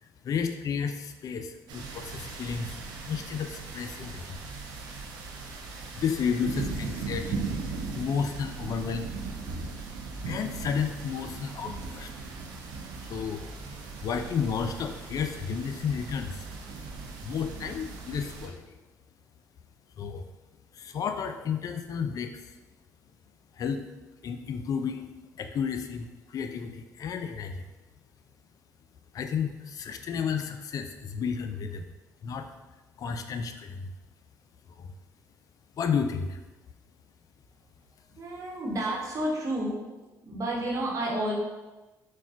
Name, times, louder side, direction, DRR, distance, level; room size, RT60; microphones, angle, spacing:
voice 1, 0.0-2.8 3.0-4.4 5.9-7.5 7.9-9.1 10.3-12.1 13.0-13.5 14.0-16.5 17.2-18.8 20.0-20.3 20.7-22.6 23.5-23.9 24.2-25.1 25.4-27.7 29.1-31.8 32.2-32.5 33.0-33.9 34.7-34.9 35.8-36.4, left 6 dB, 50° left, 7 dB, 0.3 m, -32 dB
sound 1, 1.7-18.5, right 4 dB, 75° right, 0.5 m, -38 dB
voice 2, 38.2-39.8 40.2-41.3, right 1 dB, 45° right, -3 dB, 1.0 m, -30 dB
4.1 x 2.2 x 2.5 m, 1.1 s
supercardioid pair, 65°, 8 cm